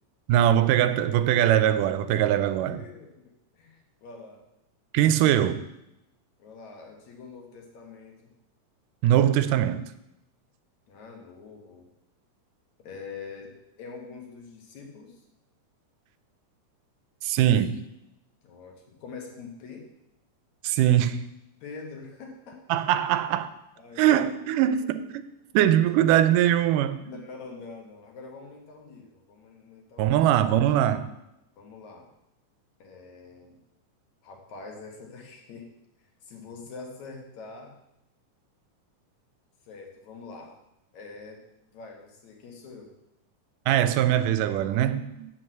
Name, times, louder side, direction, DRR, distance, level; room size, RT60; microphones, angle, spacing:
voice 1, 0.3-2.8 4.9-5.6 9.0-9.9 17.2-17.8 20.6-21.2 22.7-23.5 24.0-25.2 25.5-27.1 30.0-31.1 43.7-45.3, right 11 dB, 85° right, 2.2 m, -22 dB
voice 2, 2.4-4.4 6.4-8.2 10.9-11.9 12.8-15.2 18.4-19.9 21.6-22.6 23.8-24.5 24.8-24.9 27.0-30.4 31.6-32.1 32.8-33.6 34.2-35.7 36.2-37.7 39.7-40.5 40.9-41.5 41.7-42.9, left 4 dB, 65° left, 2.6 m, -44 dB
7.8 x 6.0 x 7.6 m
omnidirectional pair, 3.7 m